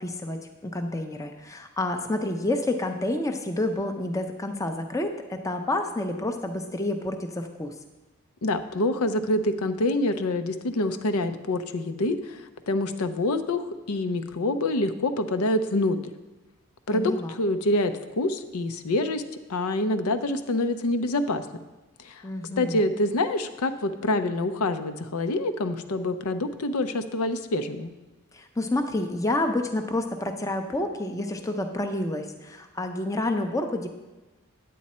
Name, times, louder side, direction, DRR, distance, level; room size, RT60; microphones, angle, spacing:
voice 1, 0.0-7.7 16.9-17.3 22.2-22.8 28.3-33.9, left 1 dB, 15° left, 5 dB, 0.5 m, -29 dB
voice 2, 8.4-16.0 16.9-19.2 19.5-21.5 22.0-22.2 22.6-27.9, left 2 dB, 85° left, 9 dB, 0.6 m, -26 dB
9.3 x 8.5 x 4.3 m, 1.1 s
head